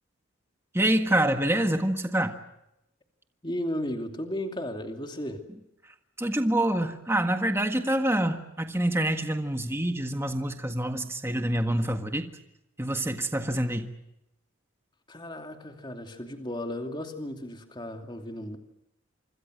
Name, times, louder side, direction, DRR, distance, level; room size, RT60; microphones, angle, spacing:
voice 1, 0.7-2.4 6.2-12.3 12.8-13.9, right 1 dB, 10° right, 6 dB, 1.6 m, -26 dB
voice 2, 3.4-5.4 15.1-18.6, left 1 dB, 20° left, 4 dB, 2.7 m, -35 dB
27.0 x 26.0 x 6.4 m, 0.85 s
head